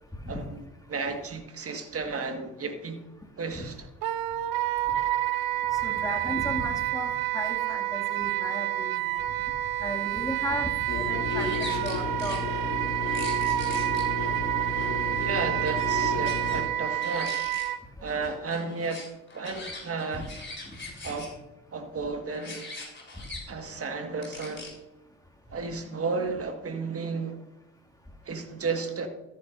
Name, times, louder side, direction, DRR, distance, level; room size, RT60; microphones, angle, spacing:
voice 1, 0.9-3.0 3.4-3.8 4.9-5.1 15.2-17.4 18.0-19.1 19.3-20.3 21.0-21.3 21.7-22.6 23.5-24.8 25.5-27.4 28.2-29.1, right 4 dB, 30° right, 1.7 m, -33 dB
Wind instrument woodwind instrument, 4.0-17.8, right 14 dB, 55° right, 0.7 m, -29 dB
voice 2, 5.8-9.0 9.8-12.4 20.1-20.2 20.7-20.8, left 1 dB, 10° left, 2.3 m, -35 dB
sound 1, 10.9-16.6, left 3 dB, 80° left, 3.9 m, -33 dB
sound 2, 11.3-12.4 13.1-14.0 15.0-16.6 16.8-17.7 18.0-21.3 22.3-23.4 24.2-24.7, left 2 dB, 25° left, 4.0 m, -42 dB
13.5 x 10.5 x 2.6 m
hypercardioid pair, 55°, 43 cm